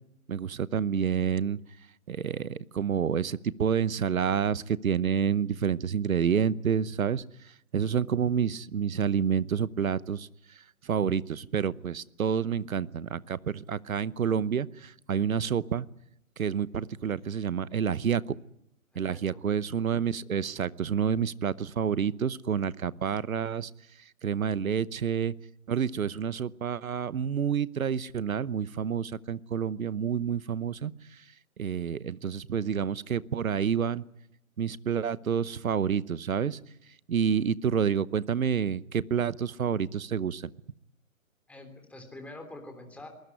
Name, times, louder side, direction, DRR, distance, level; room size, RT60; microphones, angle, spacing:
voice 1, 0.3-1.6 2.1-15.9 16.4-18.4 18.9-23.7 24.0-25.3 25.7-34.0 34.6-36.6 36.9-40.5, right 7 dB, 75° right, 19 dB, 1.0 m, -29 dB
voice 2, 19.0-19.4 41.5-43.1, left 2 dB, 5° left, 4 dB, 3.4 m, -45 dB
22.5 x 20.0 x 9.8 m, 0.79 s
hypercardioid pair, 145°, 42 cm